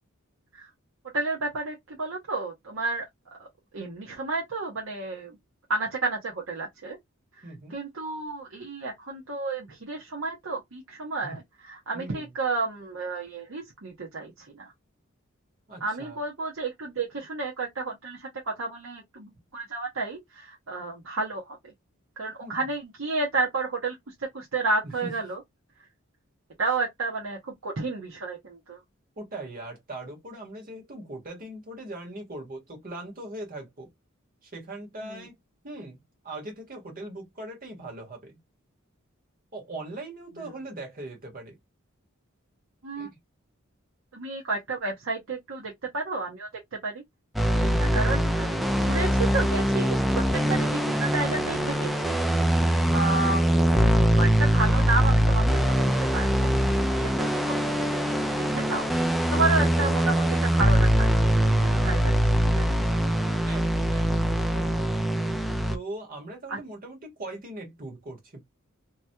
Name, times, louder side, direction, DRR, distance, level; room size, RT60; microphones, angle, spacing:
voice 1, 1.1-3.0 3.4-3.5 3.7-5.4 5.7-7.0 7.7-11.4 11.7-14.7 15.8-21.6 22.2-23.9 24.3-25.4 26.6-28.8 35.0-35.2 40.4-40.5 42.8-43.1 44.1-46.5 46.8-47.0 47.8-48.5 48.9-52.1 52.9-53.9 54.2-56.5 56.9-57.5 58.0-58.9 59.3-61.3 61.7-62.1 62.4-62.6 66.5-66.6, right 3 dB, 80° right, 1.0 m, -31 dB
voice 2, 7.4-7.8 11.2-11.4 11.9-12.3 15.7-16.2 22.4-22.7 25.0-25.2 29.2-33.9 34.4-35.3 35.6-38.4 39.5-41.6 43.0-43.2 47.5-48.4 52.6-52.9 63.4-65.0 65.7-68.4, right 2 dB, 45° right, 1.4 m, -40 dB
sound 1, 47.4-65.8, equal, ahead, 0.3 m, -23 dB
3.0 x 2.3 x 2.7 m
head